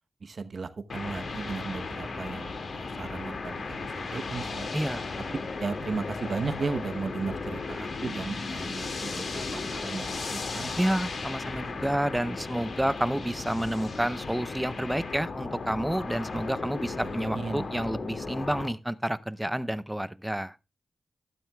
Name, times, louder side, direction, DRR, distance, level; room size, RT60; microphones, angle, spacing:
voice 1, 0.2-4.7 5.6-10.2 10.5-10.7 17.1-17.7, right 4 dB, 60° right, 0.9 m, -35 dB
sound 1, 0.9-18.7, left 3 dB, 70° left, 2.1 m, -35 dB
voice 2, 4.7-5.1 10.8-20.6, right 1 dB, 10° right, 0.6 m, -29 dB
12.5 x 12.0 x 2.3 m
cardioid pair, 65°, 0 cm